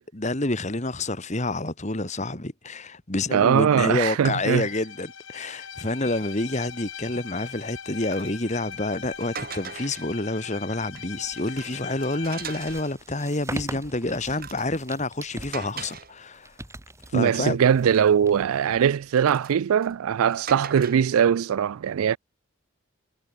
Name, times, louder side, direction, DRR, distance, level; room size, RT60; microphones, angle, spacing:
voice 1, 0.1-16.5 17.1-17.6, left 2 dB, 35° left, 1.8 m, -28 dB
voice 2, 3.3-4.7 17.1-22.2, right 8 dB, 85° right, 0.4 m, -21 dB
Bowed string instrument, 4.3-13.0, left 7 dB, 65° left, 3.2 m, -41 dB
sound 1, 6.9-7.1 7.6-10.3 10.7-12.9 13.4-16.7 17.0-18.2 18.9-21.2, right 6 dB, 45° right, 6.7 m, -42 dB
sound 2, 10.7-19.4, right 1 dB, 15° right, 3.2 m, -42 dB
head